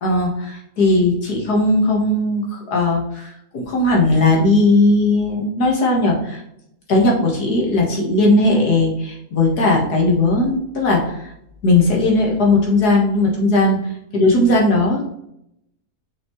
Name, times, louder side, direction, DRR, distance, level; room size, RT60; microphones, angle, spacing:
voice 1, 0.0-6.4 6.9-11.3 11.6-13.8 14.1-15.1, left 2 dB, 80° left, -1 dB, 2.1 m, -17 dB
6.4 x 5.2 x 3.1 m, 0.78 s
omnidirectional pair, 1.6 m